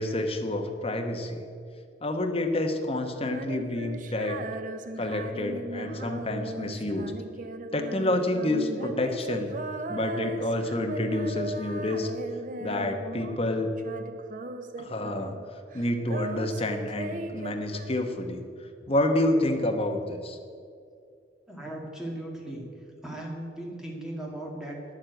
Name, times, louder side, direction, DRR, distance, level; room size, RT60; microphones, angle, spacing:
voice 1, 0.0-1.4 2.0-4.4 5.0-7.1 7.7-9.5 9.9-12.1 12.6-13.7 14.8-15.3 15.7-18.4 18.9-20.4, left 1 dB, 35° left, 4 dB, 1.1 m, -28 dB
Female singing, 3.2-13.5 13.8-15.5 15.7-18.4, right 2 dB, 50° right, 0.6 m, -38 dB
voice 2, 21.5-22.6 23.0-24.9, right 1 dB, 5° right, -2 dB, 2.1 m, -37 dB
10.5 x 7.5 x 7.9 m, 2.3 s
head